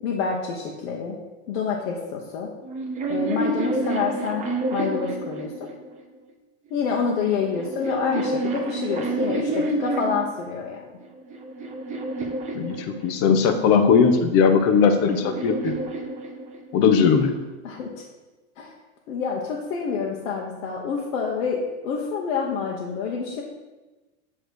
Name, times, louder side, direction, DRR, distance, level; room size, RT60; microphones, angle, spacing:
voice 1, 0.0-1.2 1.5-2.5 3.1-5.7 6.7-10.8 17.6-18.0 18.6-18.7 19.1-23.4, left 5 dB, 80° left, -2 dB, 1.3 m, -27 dB
sound 1, 2.6-6.0 7.0-10.4 11.0-13.4 14.5-16.9, right 2 dB, 20° right, 0.7 m, -29 dB
voice 2, 13.0-15.7 16.7-17.3, left 6 dB, 35° left, 7 dB, 0.8 m, -18 dB
8.6 x 3.3 x 6.3 m, 1.2 s
supercardioid pair, 150°, 39 cm